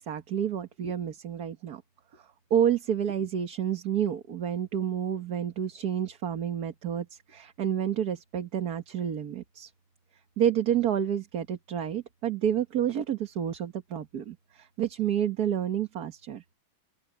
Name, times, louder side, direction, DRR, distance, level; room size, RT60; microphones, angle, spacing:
voice 1, 0.0-1.8 2.1-9.7 10.4-16.4, right 9 dB, 50° right, 1.7 m, -29 dB
open air
omnidirectional pair, 2.2 m